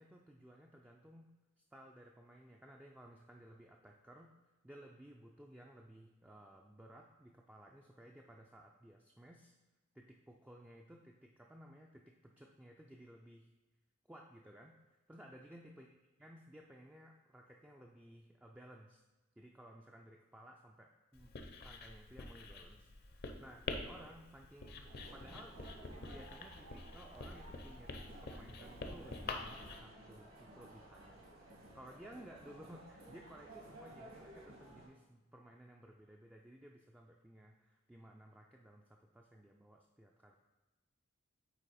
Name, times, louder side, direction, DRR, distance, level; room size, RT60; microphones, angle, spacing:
voice 1, 0.0-1.3 1.7-4.3 4.6-9.5 9.9-13.5 14.1-15.9 16.2-19.0 19.4-21.4 21.6-25.6 25.9-31.2 31.7-40.3, right 1 dB, 5° right, 0 dB, 0.3 m, -57 dB
Writing, 21.1-29.8, left 3 dB, 50° left, 0.6 m, -47 dB
sound 1, 24.8-34.8, right 1 dB, 75° right, 2.1 m, -56 dB
9.0 x 3.3 x 4.1 m, 1.1 s
head